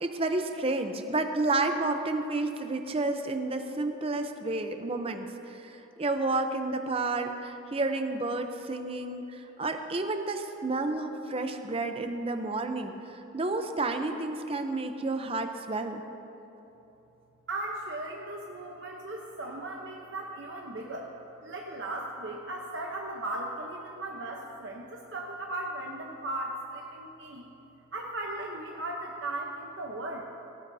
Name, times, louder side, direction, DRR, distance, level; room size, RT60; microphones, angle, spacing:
voice 1, 0.0-16.0, right 2 dB, 25° right, 6 dB, 0.6 m, -31 dB
voice 2, 17.5-21.1 21.4-27.5 27.9-30.3, right 2 dB, 60° right, 0 dB, 0.9 m, -37 dB
18.0 x 16.0 x 2.7 m, 3.0 s
head